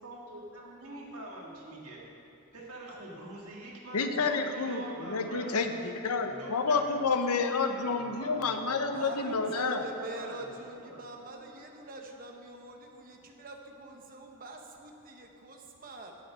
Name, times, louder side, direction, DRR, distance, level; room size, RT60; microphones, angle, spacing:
voice 1, 0.0-2.0 2.5-5.6 6.2-7.1 7.5-10.5 10.8-11.2, right 1 dB, 85° right, -3 dB, 1.8 m, -45 dB
voice 2, 3.9-9.8, left 4 dB, 90° left, 6 dB, 0.7 m, -29 dB
voice 3, 8.9-16.1, right 2 dB, 40° right, 2 dB, 0.9 m, -44 dB
8.2 x 8.2 x 5.6 m, 2.8 s
head